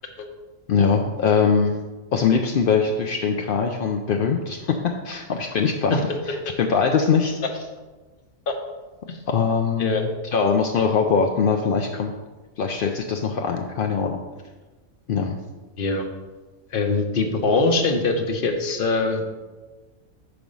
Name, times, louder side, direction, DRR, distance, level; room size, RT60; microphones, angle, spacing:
voice 1, 0.7-1.8 2.1-4.8 5.0-6.0 6.3-7.6 9.3-12.1 12.6-14.2 15.1-15.4, left 5 dB, 65° left, 2 dB, 0.5 m, -22 dB
voice 2, 16.7-19.3, left 3 dB, 45° left, 5 dB, 0.9 m, -22 dB
6.0 x 5.0 x 5.3 m, 1.2 s
omnidirectional pair, 1.4 m